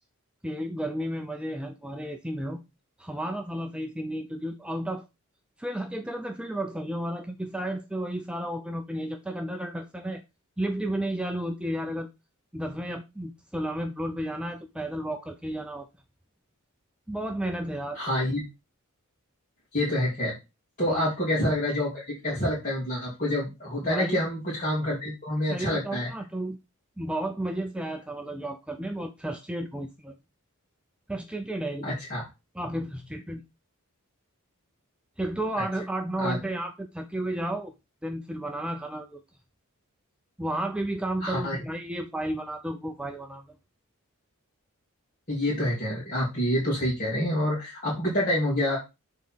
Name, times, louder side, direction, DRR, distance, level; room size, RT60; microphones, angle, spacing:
voice 1, 0.4-2.6 3.0-5.1 5.6-10.2 10.6-12.1 12.5-15.9 17.1-18.0 20.8-21.1 23.8-24.2 25.5-26.6 27.0-30.2 31.1-32.0 32.6-33.4 35.2-37.7 38.0-39.2 40.4-43.6, right 1 dB, 5° right, 0.4 m, -32 dB
voice 2, 17.9-18.4 19.7-20.3 20.8-26.1 31.8-32.2 36.2-36.3 41.2-41.6 45.3-48.8, left 1 dB, 35° left, 2.4 m, -27 dB
6.5 x 4.0 x 4.5 m
head